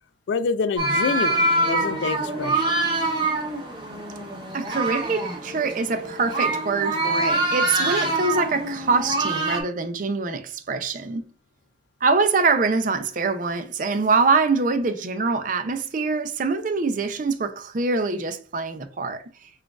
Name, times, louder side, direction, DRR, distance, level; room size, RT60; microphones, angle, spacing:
voice 1, 0.3-2.8, left 5 dB, 70° left, 0.3 m, -27 dB
sound 1, 0.8-9.6, right 2 dB, 25° right, 0.8 m, -25 dB
voice 2, 4.5-11.3 12.0-19.5, right 4 dB, 45° right, 0.5 m, -24 dB
6.0 x 2.4 x 2.3 m
head